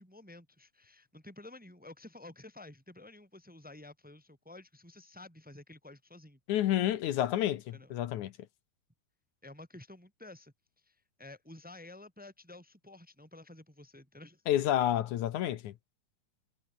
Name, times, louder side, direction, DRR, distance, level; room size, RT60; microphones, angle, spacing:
voice 1, 0.0-6.4 7.7-7.9 9.4-10.5 10.8-14.4, left 2 dB, 5° right, 2.2 m, -51 dB
voice 2, 6.5-8.3 14.5-15.7, left 12 dB, 70° left, 2.4 m, -29 dB
omnidirectional pair, 3.6 m